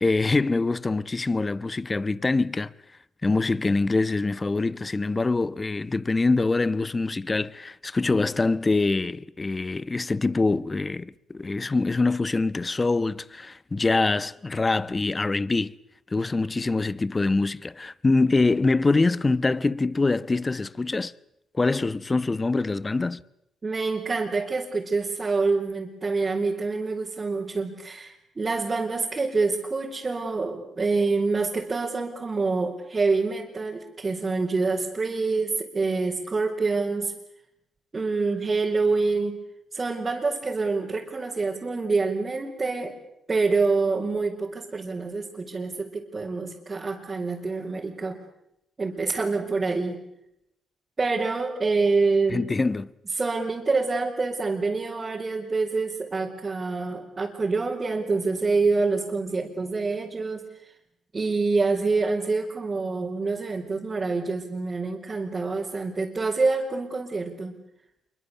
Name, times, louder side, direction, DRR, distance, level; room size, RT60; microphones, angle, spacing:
voice 1, 0.0-2.7 3.2-15.7 16.1-21.1 21.5-23.2 52.3-52.9, left 3 dB, 30° left, 1.0 m, -24 dB
voice 2, 23.6-37.1 37.9-39.4 39.7-43.0 43.3-48.2 48.8-50.0 51.0-52.5 53.2-60.4 61.1-67.6, right 3 dB, 35° right, 5.0 m, -26 dB
27.0 x 23.5 x 8.3 m
supercardioid pair, 60°, 0 cm